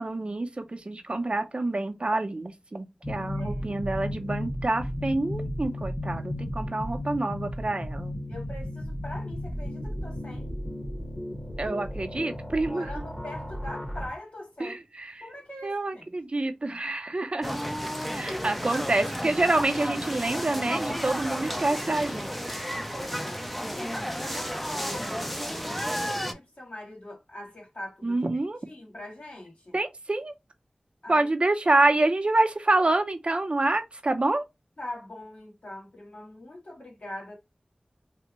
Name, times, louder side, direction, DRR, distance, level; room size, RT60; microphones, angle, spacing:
voice 1, 0.0-8.2 11.6-13.0 14.6-15.2 15.6-17.6 18.1-22.3 28.0-28.6 29.7-30.3 31.1-34.4, right 2 dB, 50° right, 0.5 m, -27 dB
sound 1, 3.0-14.1, left 1 dB, 20° left, 0.9 m, -34 dB
voice 2, 3.4-3.8 8.3-10.5 12.7-14.8 15.2-16.0 18.2-18.9 22.9-23.4 23.7-29.8 31.0-31.3 34.8-37.3, left 1 dB, 65° left, 1.4 m, -42 dB
sound 2, 17.4-26.3, equal, 5° left, 0.4 m, -32 dB
3.4 x 2.1 x 2.9 m
wide cardioid pair, 55°, 2 cm